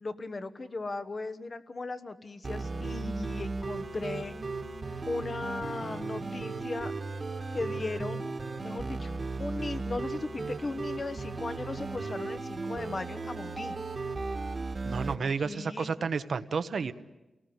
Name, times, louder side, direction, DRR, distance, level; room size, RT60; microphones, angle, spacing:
voice 1, 0.0-4.3 5.1-6.9 7.5-8.2 8.6-9.1 9.4-13.7 15.2-16.0, left 3 dB, 35° left, 11 dB, 1.2 m, -37 dB
sound 1, 2.4-15.1, right 3 dB, 35° right, 1.8 m, -36 dB
voice 2, 14.8-16.9, right 5 dB, 65° right, 12 dB, 1.1 m, -31 dB
29.5 x 19.0 x 9.6 m, 1.0 s
wide cardioid pair, 155°, 0 cm